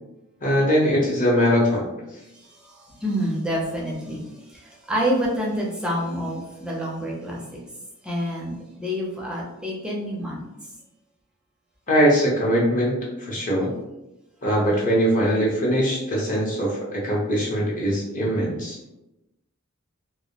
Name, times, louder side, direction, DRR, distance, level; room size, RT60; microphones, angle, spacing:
voice 1, 0.4-1.9 11.9-13.7 14.4-18.8, equal, 40° left, -3 dB, 0.7 m, -21 dB
voice 2, 3.0-4.2 4.9-7.6 8.0-10.4, equal, 5° right, -3 dB, 0.5 m, -27 dB
2.1 x 2.0 x 2.8 m, 0.92 s
head